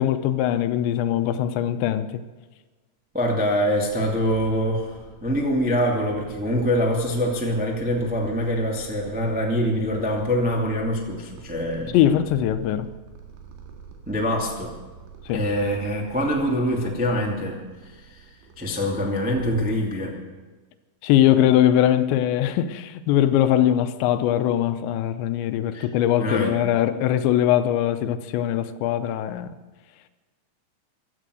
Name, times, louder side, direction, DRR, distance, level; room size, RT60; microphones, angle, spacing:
voice 1, 0.0-2.2 11.9-12.9 15.3-15.5 21.0-29.5, left 11 dB, 80° left, 3.0 m, -21 dB
voice 2, 3.1-12.0 14.1-14.8 15.3-17.6 18.0-18.2 18.6-20.2 25.7-25.9 26.2-26.6, equal, 10° right, 0.5 m, -24 dB
Purr, 3.4-20.1, right 7 dB, 85° right, 4.3 m, -45 dB
16.0 x 12.5 x 6.4 m
omnidirectional pair, 5.2 m